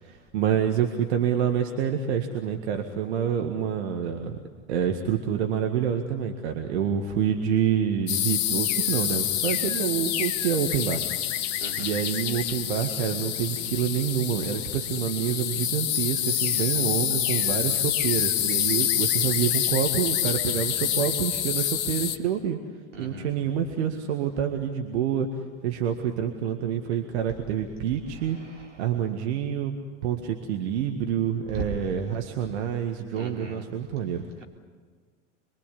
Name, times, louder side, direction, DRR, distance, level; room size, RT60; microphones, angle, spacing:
voice 1, 0.0-4.4 4.7-11.0 11.8-22.6 23.0-28.4 28.8-34.2, right 8 dB, 60° right, 4 dB, 2.0 m, -27 dB
sound 1, 8.1-22.2, left 11 dB, 45° left, 1.6 m, -27 dB
voice 2, 22.9-23.3 31.6-31.7 33.2-33.6, right 2 dB, 80° right, 0 dB, 4.0 m, -36 dB
27.0 x 23.0 x 8.5 m, 1.5 s
figure-of-eight pair, 85°, 36 cm